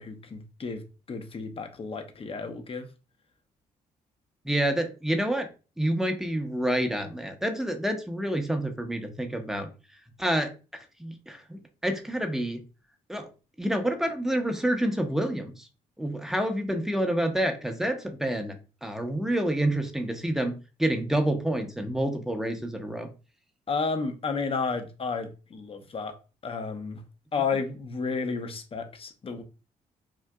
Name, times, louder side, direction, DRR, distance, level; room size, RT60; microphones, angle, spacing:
voice 1, 0.0-2.9 23.7-26.2 26.4-27.0 27.3-29.4, left 4 dB, 35° left, 0.6 m, -32 dB
voice 2, 4.4-5.5 5.8-9.7 10.2-10.5 11.0-12.6 13.1-13.3 13.6-15.7 16.0-18.6 18.8-23.1, right 1 dB, 5° right, 0.6 m, -28 dB
3.7 x 2.5 x 2.2 m
supercardioid pair, 60°, 16 cm